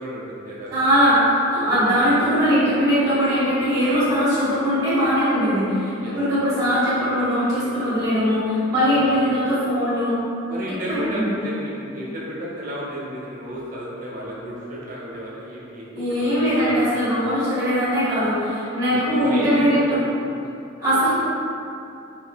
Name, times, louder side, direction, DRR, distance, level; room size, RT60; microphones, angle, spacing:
voice 1, 0.0-0.8 6.0-6.2 8.8-9.2 10.5-16.8 18.9-20.1, equal, 40° right, -6 dB, 0.7 m, -32 dB
voice 2, 0.7-10.2 10.9-11.3 15.9-20.0 20.8-21.2, equal, 20° right, -14 dB, 1.2 m, -20 dB
3.6 x 2.8 x 2.3 m, 2.7 s
head